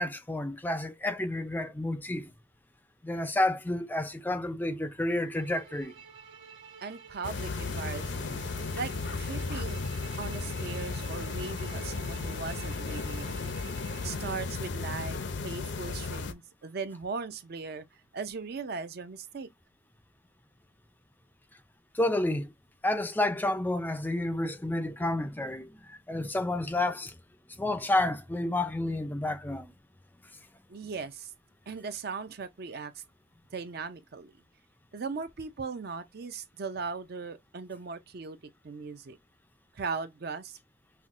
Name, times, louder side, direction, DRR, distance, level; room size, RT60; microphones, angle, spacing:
voice 1, 0.0-2.3 3.0-6.0 21.9-22.5 22.8-27.1 27.6-29.7, left 1 dB, 10° left, 0.4 m, -30 dB
Bowed string instrument, 5.3-14.4, right 7 dB, 75° right, 1.1 m, -49 dB
voice 2, 6.8-8.4 8.7-9.8 10.2-13.6 14.0-17.8 18.1-19.5 30.7-31.3 31.7-33.0 33.5-34.3 34.9-38.4 38.6-39.2 39.7-40.6, right 4 dB, 55° right, 0.5 m, -38 dB
sound 1, 7.2-16.3, left 4 dB, 65° left, 0.5 m, -35 dB
5.7 x 2.1 x 2.4 m
head